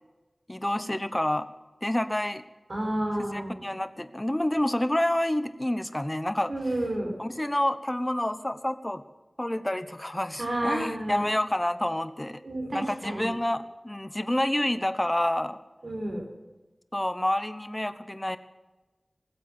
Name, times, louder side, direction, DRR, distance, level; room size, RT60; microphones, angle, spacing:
voice 1, 0.5-1.5 1.8-2.4 3.2-6.5 7.2-9.0 9.4-12.4 12.7-15.6 16.9-18.4, left 1 dB, 20° left, 12 dB, 1.0 m, -28 dB
voice 2, 2.7-3.6 6.5-7.1 10.4-11.2 12.4-13.3 15.8-16.2, right 1 dB, 80° right, 0 dB, 4.7 m, -30 dB
20.0 x 8.0 x 9.1 m, 1.2 s
wide cardioid pair, 55°, 0 cm